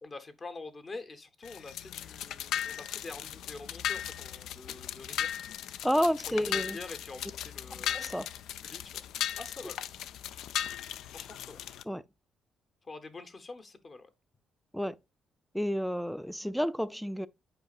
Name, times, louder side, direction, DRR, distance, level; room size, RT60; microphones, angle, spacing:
voice 1, 0.0-5.3 6.3-8.0 8.6-9.0 9.4-9.8 11.1-11.6 12.8-14.1, left 3 dB, 35° left, 0.8 m, -46 dB
sound 1, 1.4-11.8, left 10 dB, 85° left, 0.3 m, -37 dB
voice 2, 5.8-6.8 7.9-8.3 11.9-12.0 14.7-14.9 15.5-17.3, equal, ahead, 0.3 m, -30 dB
8.0 x 4.9 x 2.4 m
cardioid pair, 90°, 0 cm